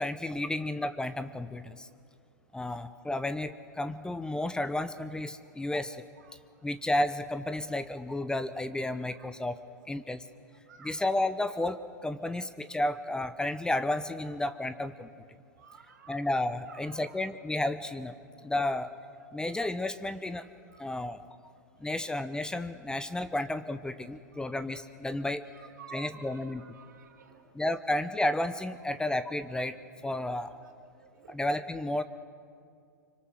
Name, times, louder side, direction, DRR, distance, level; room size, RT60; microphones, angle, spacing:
voice 1, 0.0-1.9 2.5-6.0 6.6-9.6 9.9-10.2 10.8-15.1 16.1-18.1 18.4-18.9 19.3-20.5 20.8-21.2 21.8-25.4 25.9-26.6 27.5-30.5 31.3-32.0, left 1 dB, 10° left, 12 dB, 0.8 m, -32 dB
voice 2, 15.6-16.2 16.7-17.2 20.7-20.8 21.9-22.0 25.5-27.4 30.5-30.7 31.1-31.3, right 7 dB, 75° right, 2 dB, 3.6 m, -51 dB
25.5 x 24.5 x 6.5 m, 2.4 s
hypercardioid pair, 105°, 10 cm